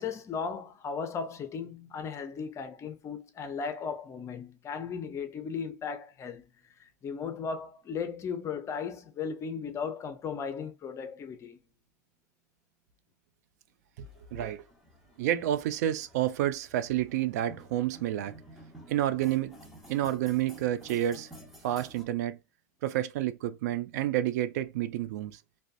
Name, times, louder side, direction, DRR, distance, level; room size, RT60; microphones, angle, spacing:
voice 1, 0.0-6.5 6.8-11.6, left 6 dB, 30° left, 0.6 m, -36 dB
sound 1, 14.0-22.0, right 1 dB, 5° right, 1.1 m, -53 dB
voice 2, 14.0-14.7 15.2-18.3 18.9-19.6 19.9-21.3 21.6-22.4 22.8-25.4, right 12 dB, 70° right, 0.4 m, -29 dB
2.4 x 2.3 x 2.5 m
hypercardioid pair, 100°, 9 cm